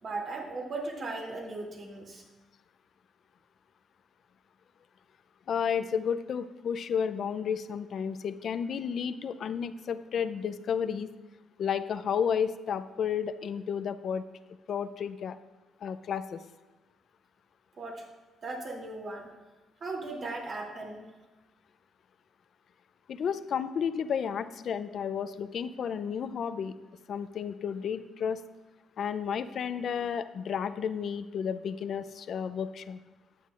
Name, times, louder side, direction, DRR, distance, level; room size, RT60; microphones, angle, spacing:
voice 1, 0.0-2.2 17.8-18.0 18.4-19.3 19.8-21.1, right 3 dB, 50° right, -1 dB, 2.7 m, -37 dB
voice 2, 5.5-11.1 11.6-14.2 14.7-15.4 15.8-16.4 23.1-26.8 27.1-28.4 29.0-33.0, left 7 dB, 60° left, 12 dB, 0.5 m, -32 dB
14.0 x 9.3 x 2.5 m, 1.2 s
cardioid pair, 90°, 0 cm